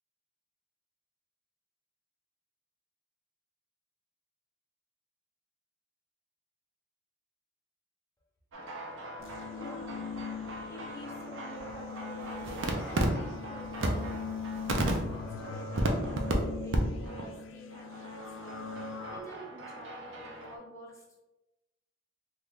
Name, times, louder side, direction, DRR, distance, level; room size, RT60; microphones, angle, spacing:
sound 1, 8.5-16.3 16.7-16.8 17.0-17.3 17.7-20.6, right 1 dB, 75° right, 0.6 m, -35 dB
sound 2, 9.2-19.2, left 5 dB, 75° left, 0.4 m, -41 dB
voice 1, 9.5-10.1 10.4-14.2 14.7-18.8 19.1-21.2, equal, 15° left, -4 dB, 0.9 m, -48 dB
2.9 x 2.6 x 3.6 m, 1.0 s
head